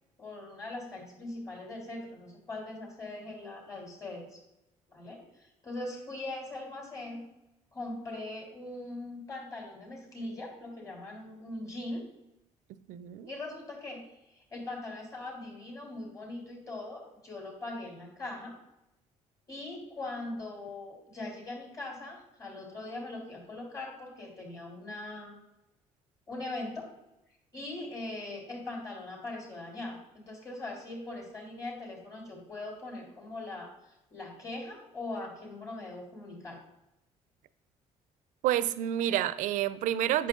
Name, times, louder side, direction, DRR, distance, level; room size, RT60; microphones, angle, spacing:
voice 1, 0.2-4.4 4.9-7.2 7.7-12.0 13.3-18.6 19.5-25.4 26.3-26.9 27.5-36.6, left 2 dB, 25° left, 3.3 m, -41 dB
voice 2, 12.9-13.3 38.4-40.3, right 12 dB, 85° right, 0.5 m, -29 dB
8.5 x 6.9 x 3.8 m
cardioid pair, 100°, 13 cm